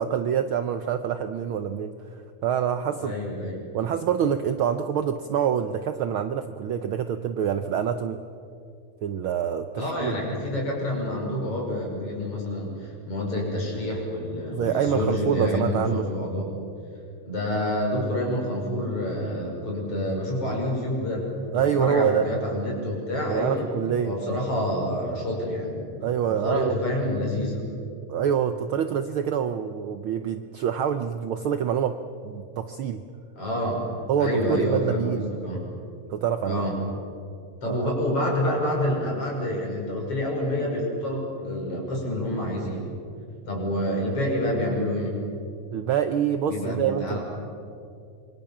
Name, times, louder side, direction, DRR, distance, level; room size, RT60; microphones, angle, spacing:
voice 1, 0.0-3.1 3.7-8.2 9.0-10.1 14.5-16.1 21.5-22.3 23.2-24.1 26.0-26.7 28.1-32.0 32.2-33.0 34.1-35.3 36.1-36.7 37.7-37.9 45.7-47.2, right 8 dB, 85° right, 9 dB, 1.1 m, -26 dB
voice 2, 3.0-3.6 9.8-16.5 17.3-21.3 21.5-23.7 24.0-25.9 26.3-27.7 33.4-33.8 34.2-35.6 36.4-36.7 37.6-42.9 43.5-45.1 46.5-47.2, left 1 dB, 50° left, -1 dB, 6.7 m, -28 dB
26.5 x 24.0 x 7.3 m, 2.5 s
omnidirectional pair, 3.4 m